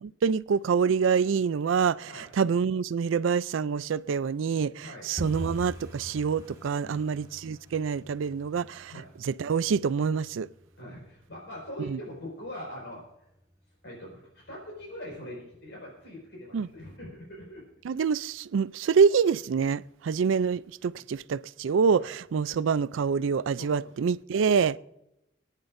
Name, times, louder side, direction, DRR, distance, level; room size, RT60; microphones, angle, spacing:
voice 1, 0.0-8.9 9.2-10.5 11.8-12.0 16.5-16.7 17.8-24.8, right 6 dB, 90° right, 0.4 m, -26 dB
sound 1, 5.2-15.9 16.1-16.8 17.1-17.4 17.7-18.0 18.3-18.4 18.9-19.5 19.8-19.9 20.4-20.5, equal, 15° right, 1.8 m, -46 dB
voice 2, 6.8-7.1 8.9-9.1 10.8-13.0 13.8-17.6 20.1-20.2 20.9-21.1 22.0-22.1 23.6-23.8, left 1 dB, 70° left, 5.2 m, -42 dB
27.5 x 9.9 x 2.6 m
head